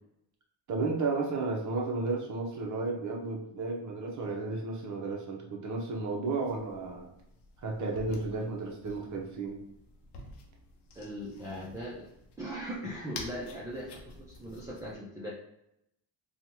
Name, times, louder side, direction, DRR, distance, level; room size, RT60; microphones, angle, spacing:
voice 1, 0.7-7.1 7.6-9.6, right 3 dB, 40° right, 0 dB, 0.7 m, -33 dB
sound 1, 6.4-14.9, left 3 dB, 60° left, 0.7 m, -50 dB
voice 2, 10.9-12.1 12.4-15.4, equal, 10° right, -6 dB, 0.4 m, -39 dB
2.8 x 2.3 x 2.9 m, 0.78 s
cardioid pair, 120°, 47 cm